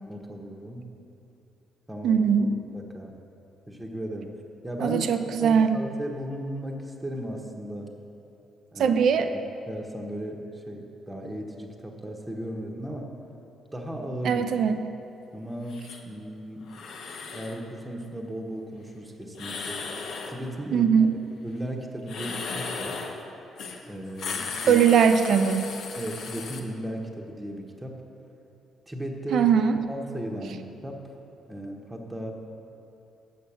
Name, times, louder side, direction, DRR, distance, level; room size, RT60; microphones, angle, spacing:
voice 1, 0.1-0.8 1.9-2.3 2.5-3.1 3.7-4.3 4.6-5.0 5.4-7.9 8.7-9.0 9.3-9.4 9.7-13.1 13.7-14.7 15.3-16.6 17.3-19.8 20.3-21.1 21.4-23.0 23.9-24.9 26.0-28.0 28.9-29.5 29.9-31.0 31.5-32.3, right 1 dB, 10° right, 1 dB, 1.1 m, -36 dB
voice 2, 2.0-2.5 4.8-5.8 8.8-9.3 14.2-14.8 20.7-21.1 24.7-25.7 29.3-29.8, right 7 dB, 70° right, 9 dB, 0.5 m, -21 dB
sound 1, 15.7-16.0 16.7-17.6 19.3-20.4 22.0-23.2 23.6-23.8 24.1-26.6, left 4 dB, 75° left, 0.9 m, -36 dB
8.0 x 6.5 x 7.1 m, 2.8 s
cardioid pair, 90°, 0 cm